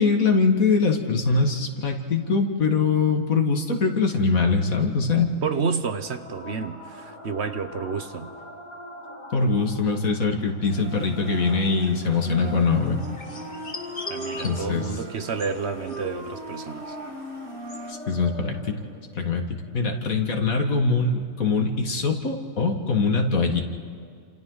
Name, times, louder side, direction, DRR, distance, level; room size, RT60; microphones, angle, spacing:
voice 1, 0.0-5.3 9.3-13.0 14.4-14.9 17.9-18.8 19.1-23.6, left 4 dB, 75° left, 3 dB, 2.3 m, -23 dB
voice 2, 5.4-8.3 13.5-13.6 14.1-17.0, right 5 dB, 55° right, 9 dB, 1.1 m, -30 dB
sound 1, 5.9-20.9, equal, 55° left, 3.1 m, -43 dB
sound 2, 10.6-17.9, left 3 dB, 40° left, 1.6 m, -44 dB
Wind instrument woodwind instrument, 12.2-18.1, equal, 75° right, 2.8 m, -38 dB
30.0 x 27.5 x 4.0 m, 2.3 s
omnidirectional pair, 1.4 m